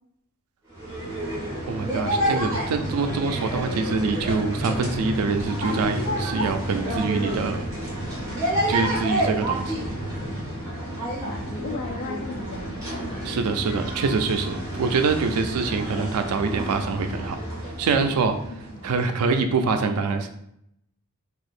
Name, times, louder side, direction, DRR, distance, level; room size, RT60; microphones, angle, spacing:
sound 1, 0.7-19.2, right 1 dB, 15° right, 1.2 m, -30 dB
sound 2, 1.6-10.6, right 1 dB, 30° left, 0.9 m, -38 dB
voice 1, 1.7-7.7 8.7-9.9 13.2-18.4 18.8-20.3, right 4 dB, 85° right, 7 dB, 0.4 m, -25 dB
voice 2, 11.3-12.8 13.1-13.6 18.5-18.9, left 3 dB, 50° left, 1 dB, 0.4 m, -36 dB
2.8 x 2.4 x 4.1 m, 0.75 s
head